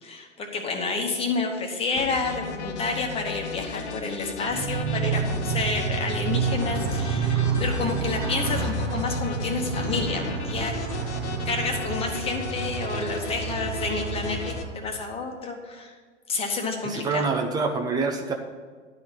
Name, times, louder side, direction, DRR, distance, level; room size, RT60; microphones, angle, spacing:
voice 1, 0.0-10.7 11.4-15.9 16.3-17.2, left 4 dB, 15° left, 2 dB, 1.3 m, -29 dB
sound 1, 2.0-14.6, left 5 dB, 60° left, 1.1 m, -35 dB
Motorcycle, 4.4-15.1, right 5 dB, 45° right, 1.2 m, -29 dB
voice 2, 16.8-18.3, right 4 dB, 10° right, 3 dB, 0.5 m, -26 dB
11.5 x 4.2 x 7.4 m, 1.5 s
figure-of-eight pair, 110°, 38 cm